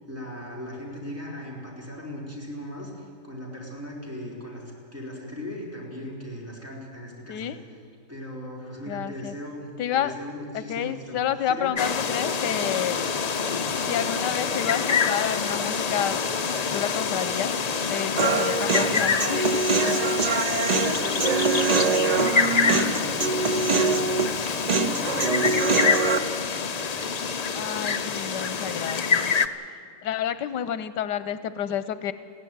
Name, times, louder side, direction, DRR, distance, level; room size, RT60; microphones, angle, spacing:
voice 1, 0.1-7.5 8.1-9.7 9.9-11.2 11.5-11.8 20.4-21.3 21.6-24.4 24.7-25.8, left 1 dB, 10° right, -3 dB, 4.6 m, -37 dB
voice 2, 8.9-9.3 9.8-10.1 10.5-13.0 13.8-16.2 16.7-17.5 17.9-19.7 27.5-29.3 30.0-32.1, left 9 dB, 85° left, 13 dB, 1.4 m, -29 dB
sound 1, 11.8-29.5, left 5 dB, 70° left, 0.3 m, -26 dB
Human voice, 18.2-26.2, right 4 dB, 45° right, 0.5 m, -24 dB
21.5 x 16.0 x 9.3 m, 2.1 s
omnidirectional pair, 1.8 m